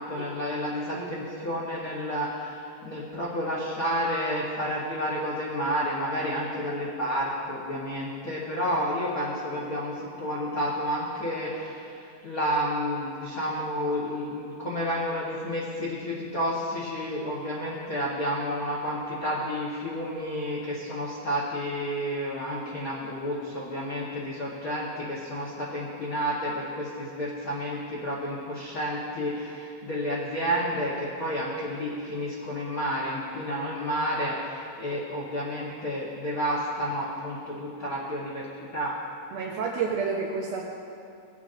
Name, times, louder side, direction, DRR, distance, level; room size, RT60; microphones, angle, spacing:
voice 1, 0.0-39.0, equal, 85° left, -6 dB, 0.7 m, -30 dB
voice 2, 39.3-40.6, right 5 dB, 70° right, -2 dB, 1.8 m, -30 dB
19.0 x 8.0 x 2.5 m, 2.5 s
omnidirectional pair, 3.5 m